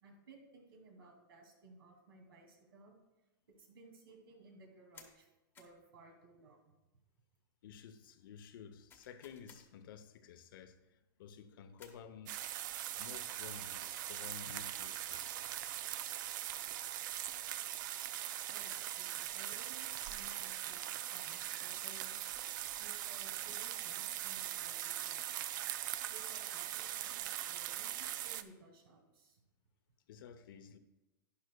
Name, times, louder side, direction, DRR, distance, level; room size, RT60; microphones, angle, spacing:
voice 1, 0.0-3.0 3.6-5.3 5.6-6.7 18.5-22.2 22.8-25.5 26.1-29.4, right 2 dB, 85° right, 2.5 m, -59 dB
sound 1, 4.9-5.2 5.5-5.8 8.9-9.7 11.8-12.1 14.2-14.4 16.3-16.8, left 6 dB, 15° left, 1.0 m, -60 dB
voice 2, 7.6-12.3 13.0-15.6 30.1-30.8, left 7 dB, 70° left, 0.8 m, -53 dB
sound 2, 12.3-28.4, right 12 dB, 60° right, 0.5 m, -41 dB
11.5 x 9.9 x 2.3 m
supercardioid pair, 150°, 12 cm